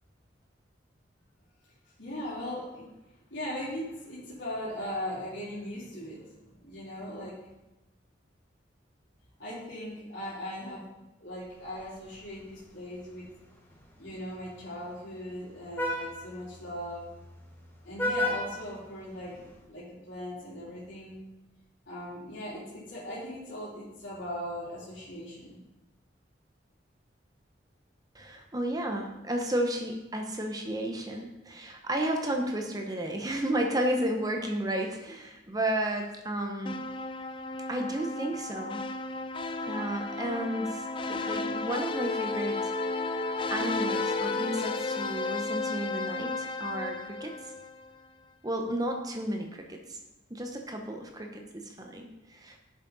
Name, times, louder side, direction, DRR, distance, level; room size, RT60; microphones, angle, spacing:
voice 1, 2.0-2.9 3.3-7.3 9.4-10.8 11.2-13.2 14.0-17.1 17.8-21.2 21.9-25.6, equal, 80° left, -9 dB, 3.4 m, -39 dB
Vehicle horn car horn honking, 11.5-19.6, left 1 dB, 10° left, 1.3 m, -38 dB
voice 2, 28.1-36.8 37.7-38.8 39.7-40.8 41.1-42.7 43.5-47.3 48.4-50.0 50.3-52.6, right 1 dB, 20° right, 3 dB, 0.9 m, -32 dB
sound 1, 36.7-47.9, left 3 dB, 25° left, 0.4 m, -33 dB
11.5 x 7.5 x 4.1 m, 1.0 s
head